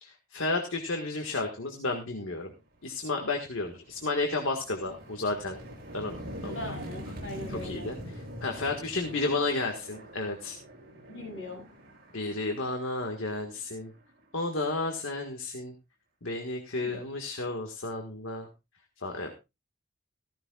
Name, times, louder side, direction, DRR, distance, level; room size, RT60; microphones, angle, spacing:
voice 1, 0.0-2.5 2.8-5.6 5.9-6.6 7.6-8.0 8.4-10.6 12.1-13.9 14.3-15.7 16.2-18.5 19.0-19.4, left 3 dB, 85° left, 3 dB, 1.6 m, -32 dB
sound 1, 2.9-3.0 3.5-14.2, equal, 50° right, 6.9 m, -44 dB
voice 2, 6.5-7.9 11.1-11.6 16.8-17.0, left 1 dB, 65° left, 0 dB, 7.5 m, -40 dB
15.0 x 14.5 x 2.4 m, 0.26 s
head